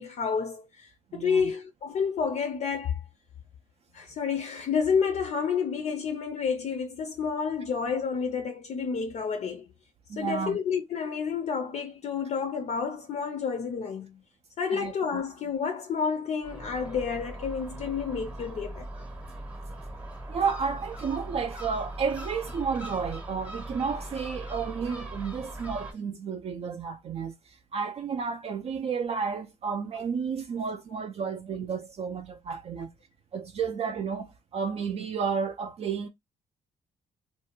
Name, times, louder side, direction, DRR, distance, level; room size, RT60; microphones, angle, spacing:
voice 1, 0.0-3.0 3.9-9.6 10.2-14.2 14.6-18.9, left 6 dB, 50° left, 0.5 m, -30 dB
voice 2, 1.1-1.5 10.1-10.6 14.7-15.2 20.3-32.9 33.3-36.1, right 6 dB, 45° right, 0.4 m, -32 dB
Gull seagull, 16.4-25.9, right 1 dB, 10° right, 0.8 m, -40 dB
2.5 x 2.2 x 2.8 m
cardioid pair, 100°, 15 cm